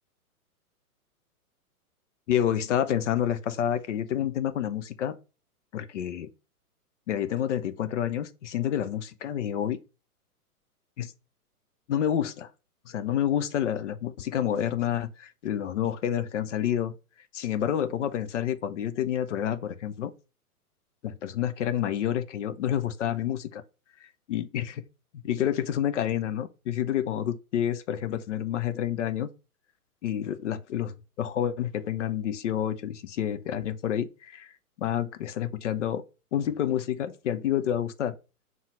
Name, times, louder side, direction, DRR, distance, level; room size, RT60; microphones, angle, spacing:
voice 1, 2.3-5.1 5.7-6.3 7.1-9.8 11.0-11.1 11.9-12.5 12.9-16.9 17.3-20.1 21.0-23.6 24.0-24.8 25.1-29.3 30.0-34.5 34.8-36.0 36.3-38.2, left 10 dB, 55° left, 0.6 m, -29 dB
5.5 x 2.1 x 4.6 m
figure-of-eight pair, 120°, 45 cm